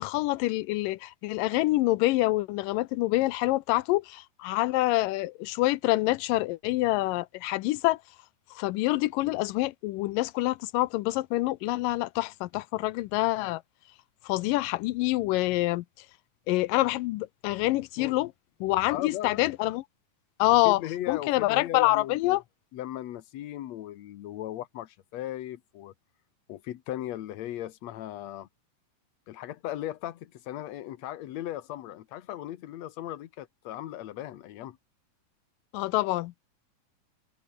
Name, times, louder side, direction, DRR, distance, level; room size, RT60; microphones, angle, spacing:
voice 1, 0.0-8.0 8.6-13.6 14.2-15.8 16.5-18.3 18.6-19.8 20.4-20.8 21.1-22.4 35.7-36.3, left 18 dB, 85° left, 2.3 m, -26 dB
voice 2, 18.9-19.5 20.6-22.4 22.7-25.9 26.5-28.5 29.3-34.8, left 13 dB, 60° left, 2.1 m, -37 dB
omnidirectional pair, 3.9 m